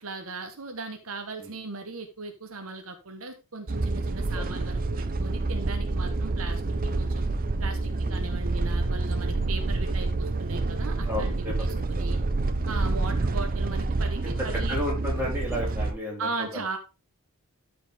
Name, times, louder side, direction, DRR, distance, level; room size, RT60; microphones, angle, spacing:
voice 1, 0.0-6.6 7.0-7.2 7.6-11.3 11.6-12.2 12.7-14.8 16.2-16.8, right 3 dB, 65° right, 6 dB, 1.2 m, -37 dB
sound 1, 3.7-15.9, right 3 dB, 40° right, 0.6 m, -28 dB
voice 2, 11.1-11.6 12.0-12.2 12.8-12.9 14.2-14.3 14.7-16.6, left 1 dB, 10° right, -4 dB, 3.8 m, -33 dB
12.5 x 5.1 x 3.6 m, 0.28 s
head